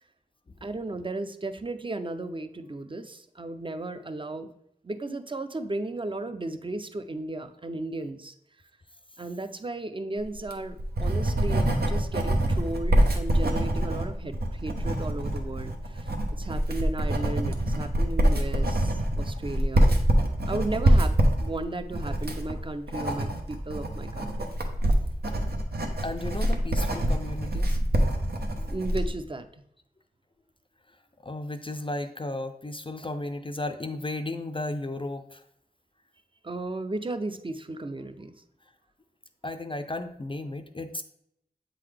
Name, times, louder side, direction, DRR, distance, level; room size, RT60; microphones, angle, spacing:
voice 1, 0.6-4.5 4.8-8.3 9.2-19.9 20.5-24.5 28.7-29.6 36.4-38.3, right 2 dB, 35° right, 10 dB, 0.5 m, -35 dB
Writing, 10.3-29.1, right 1 dB, 85° right, 0.7 m, -25 dB
voice 2, 26.0-27.8 31.2-35.4 39.4-41.0, left 2 dB, 35° left, 7 dB, 0.4 m, -34 dB
7.6 x 3.8 x 3.3 m, 0.74 s
wide cardioid pair, 40°, 16 cm